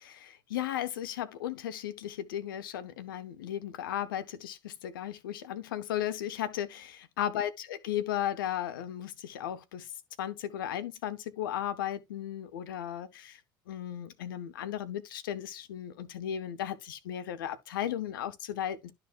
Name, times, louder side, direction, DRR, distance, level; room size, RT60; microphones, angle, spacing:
voice 1, 0.0-9.9 10.2-13.4 13.7-18.9, left 11 dB, 90° left, 1.0 m, -35 dB
12.0 x 4.1 x 2.5 m
hypercardioid pair, 75°, 11 cm